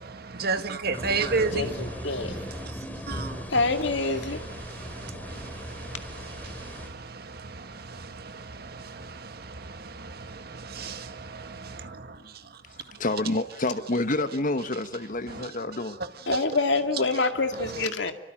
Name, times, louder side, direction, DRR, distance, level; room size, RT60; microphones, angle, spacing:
voice 1, 0.0-2.7 3.1-3.5 4.2-12.2, right 4 dB, 55° right, 1.9 m, -34 dB
sound 1, 0.9-6.9, equal, 10° left, 3.9 m, -38 dB
voice 2, 1.5-2.3 3.5-4.4 16.3-18.1, left 3 dB, 70° left, 2.4 m, -26 dB
voice 3, 13.0-16.0, left 2 dB, 45° left, 1.2 m, -28 dB
27.0 x 24.5 x 8.9 m
head